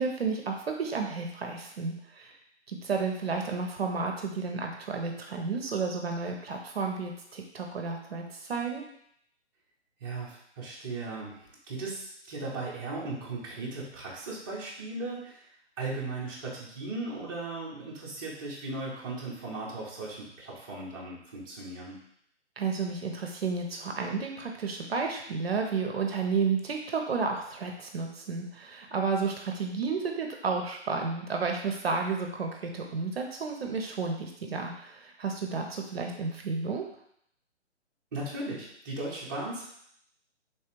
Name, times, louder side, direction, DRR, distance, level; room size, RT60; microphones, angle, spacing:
voice 1, 0.0-2.3 2.7-8.8 22.6-36.9, right 4 dB, 60° right, 2 dB, 0.6 m, -32 dB
voice 2, 10.0-15.5 15.8-22.0 38.1-39.6, right 2 dB, 20° right, -6 dB, 0.6 m, -37 dB
3.2 x 3.2 x 2.9 m, 0.70 s
figure-of-eight pair, 140°, 36 cm